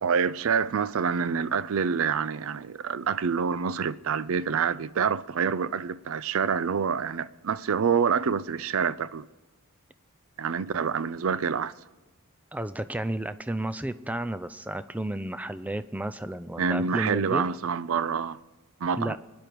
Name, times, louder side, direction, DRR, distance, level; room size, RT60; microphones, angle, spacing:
voice 1, 0.0-9.3 10.4-11.7 16.6-18.4 18.8-19.2, right 6 dB, 65° right, 0.4 m, -27 dB
voice 2, 12.5-17.4 19.0-19.2, right 1 dB, 5° right, 0.4 m, -32 dB
24.5 x 10.0 x 4.6 m
head